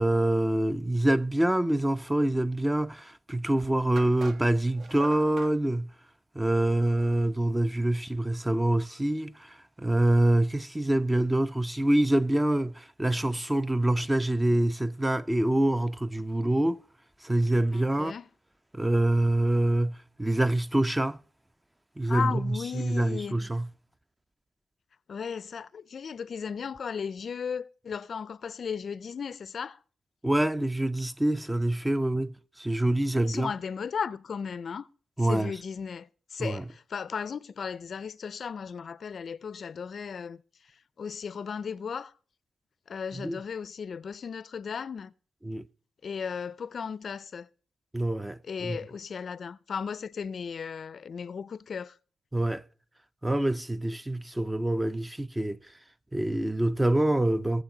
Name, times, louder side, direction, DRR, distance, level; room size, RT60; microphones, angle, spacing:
voice 1, 0.0-5.9 6.4-16.8 17.2-18.2 18.7-21.2 22.0-23.7 30.2-33.5 35.2-35.6 36.4-36.7 43.1-43.4 45.4-45.6 47.9-48.8 52.3-52.6 53.2-55.6 56.1-57.6, right 1 dB, 10° right, 0.4 m, -26 dB
sound 1, 3.1-3.2 4.0-5.6, right 4 dB, 60° right, 1.0 m, -44 dB
voice 2, 17.7-18.2 22.1-23.4 25.1-29.8 33.2-34.9 35.2-40.4 41.0-42.1 42.9-45.1 46.0-47.5 48.5-51.9, left 6 dB, 55° left, 0.4 m, -35 dB
19.0 x 7.3 x 3.8 m
cardioid pair, 90°, 0 cm